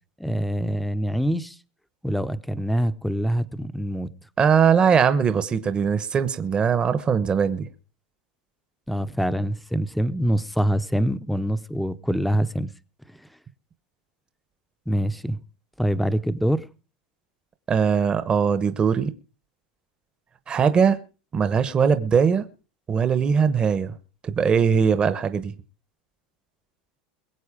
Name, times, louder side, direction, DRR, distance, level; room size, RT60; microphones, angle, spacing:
voice 1, 0.2-1.6 2.0-4.1 8.9-12.7 13.2-13.3 14.9-15.4 15.8-16.7, equal, ahead, 0.7 m, -25 dB
voice 2, 4.4-7.7 17.7-19.1 20.5-21.0 21.3-22.5 22.9-23.9 24.2-25.5, right 6 dB, 20° right, 0.9 m, -20 dB
22.0 x 7.9 x 5.0 m
supercardioid pair, 155°, 5 cm